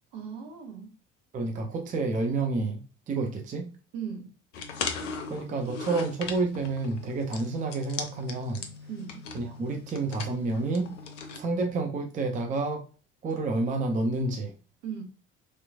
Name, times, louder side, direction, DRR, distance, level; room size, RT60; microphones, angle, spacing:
voice 1, 0.1-0.9 3.9-4.3 8.9-9.3 14.8-15.0, right 7 dB, 60° right, 0.9 m, -38 dB
voice 2, 1.3-3.7 5.3-8.7 9.3-10.9 11.4-12.8 13.2-14.5, right 3 dB, 20° right, 0.5 m, -29 dB
sound 1, 4.5-11.4, left 5 dB, 75° left, 0.6 m, -39 dB
3.1 x 3.0 x 2.3 m
figure-of-eight pair, 55°, 37 cm